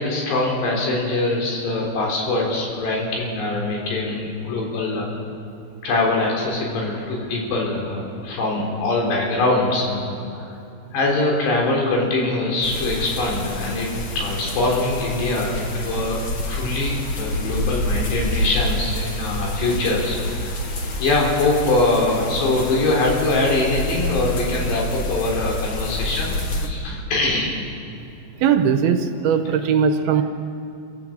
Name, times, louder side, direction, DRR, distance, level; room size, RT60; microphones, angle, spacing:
voice 1, 0.0-5.1 5.8-10.5 10.9-16.2 16.5-20.7 21.0-26.3 26.6-27.6 29.6-29.7, left 2 dB, 80° left, -1 dB, 6.0 m, -23 dB
sound 1, 12.6-26.7, left 1 dB, 55° left, 1.3 m, -27 dB
voice 2, 28.4-30.2, right 7 dB, 75° right, 7 dB, 2.7 m, -19 dB
26.5 x 16.0 x 7.7 m, 2.6 s
omnidirectional pair, 4.8 m